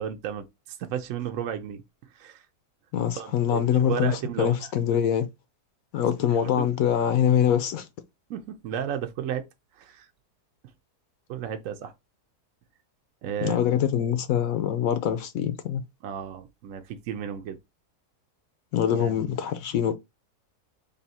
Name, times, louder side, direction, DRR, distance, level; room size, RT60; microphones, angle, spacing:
voice 1, 0.0-1.8 2.1-2.5 3.2-4.7 6.2-6.7 8.3-9.4 9.8-10.1 11.3-11.9 13.2-13.9 16.0-17.6 18.9-19.4, right 9 dB, 65° right, 0.9 m, -33 dB
voice 2, 2.9-4.1 4.4-5.3 5.9-7.9 13.4-15.8 18.7-20.0, left 9 dB, 70° left, 0.9 m, -24 dB
3.4 x 2.7 x 4.1 m
omnidirectional pair, 1.7 m